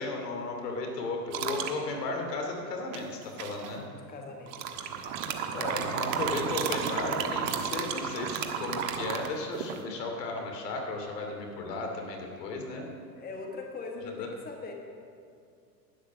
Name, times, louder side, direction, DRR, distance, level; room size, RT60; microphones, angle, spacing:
voice 1, 0.0-3.8 5.5-12.8 14.2-14.3, left 3 dB, 70° left, 2 dB, 2.7 m, -35 dB
sound 1, 1.3-1.8 2.9-3.7 4.5-9.8, right 7 dB, 55° right, 1.4 m, -33 dB
voice 2, 3.9-5.3 12.3-12.6 13.1-14.7, left 3 dB, 20° left, 2 dB, 1.4 m, -42 dB
11.5 x 10.5 x 6.1 m, 2.4 s
hypercardioid pair, 100°, 50 cm